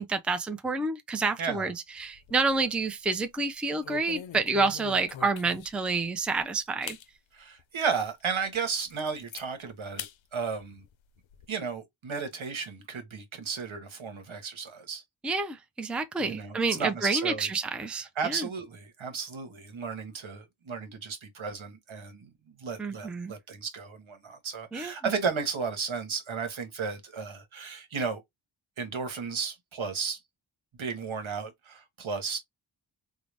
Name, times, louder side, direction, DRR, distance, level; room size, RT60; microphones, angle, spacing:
voice 1, 0.0-7.0 15.2-18.5 22.8-23.3 24.7-25.1, right 3 dB, ahead, 0.4 m, -29 dB
voice 2, 1.4-1.7 7.3-10.1 10.3-10.8 11.5-15.0 16.2-17.5 18.2-22.3 22.6-28.2 28.8-30.2 30.8-32.4, right 5 dB, 75° right, 1.1 m, -34 dB
sound 1, 2.0-2.7 3.1-3.3 3.8-5.9 6.4-6.5 6.8-7.1 7.6-7.7 8.2-8.3 8.6-9.4 10.0-10.2 10.5-11.5, left 10 dB, 75° left, 0.5 m, -42 dB
3.8 x 2.0 x 3.2 m
wide cardioid pair, 70°, 47 cm